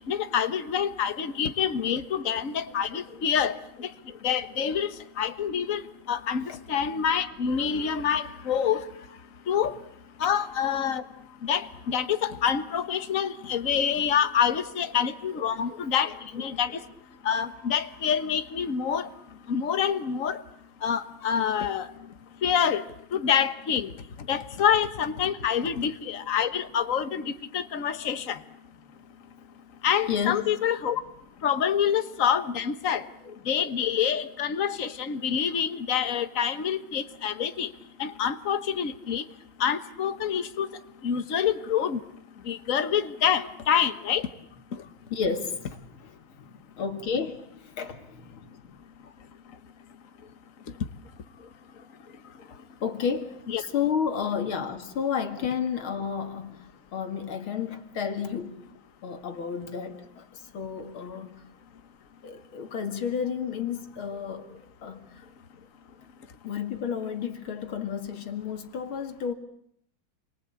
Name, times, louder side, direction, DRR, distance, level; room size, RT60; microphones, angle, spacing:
voice 1, 0.1-3.9 4.2-4.9 5.2-5.8 6.1-8.9 9.5-9.7 10.2-11.0 11.4-16.8 17.2-19.1 19.5-20.4 20.8-21.9 22.4-22.8 23.1-23.9 24.3-28.4 29.8-31.0 31.4-33.0 33.5-37.7 38.0-39.2 39.6-40.7 41.0-42.0 42.5-44.3 53.5-53.6, left 8 dB, 45° left, 1.6 m, -26 dB
voice 2, 15.7-16.2 25.6-25.7 30.1-30.5 33.2-33.7 45.1-46.1 46.4-48.8 50.2-50.3 51.4-51.5 52.1-52.5 52.8-56.6 56.9-58.7 59.0-61.4 62.2-65.3 66.4-69.3, left 7 dB, 85° left, 2.9 m, -32 dB
29.0 x 23.5 x 8.6 m
omnidirectional pair, 2.2 m